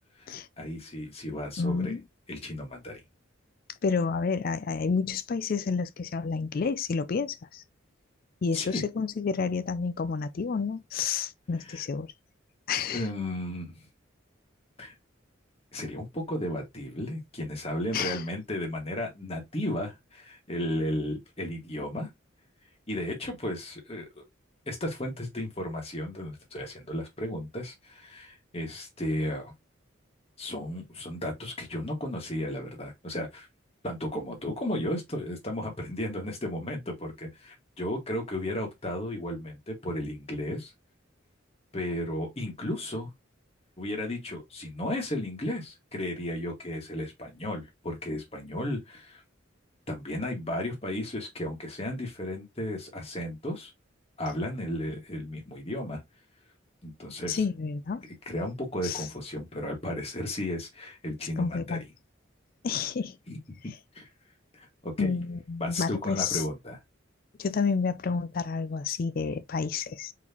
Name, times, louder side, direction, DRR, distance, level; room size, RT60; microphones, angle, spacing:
voice 1, 0.2-2.0 2.3-3.0 8.5-8.8 11.6-11.8 12.9-13.8 14.8-14.9 15.7-22.1 22.9-24.2 24.7-29.5 30.4-33.5 33.8-40.7 41.7-43.1 43.8-49.2 49.9-53.7 54.2-56.0 56.8-57.4 58.2-61.8 63.3-63.4 63.9-64.1 64.5-65.2 65.6-66.8, left 1 dB, 30° left, 1.7 m, -34 dB
voice 2, 1.6-2.0 3.8-7.6 8.4-12.1 12.7-13.0 17.9-18.2 57.3-58.0 58.8-59.1 61.4-61.8 62.6-63.2 65.0-66.4 67.4-70.1, left 5 dB, 45° left, 0.4 m, -30 dB
4.5 x 4.1 x 2.8 m
head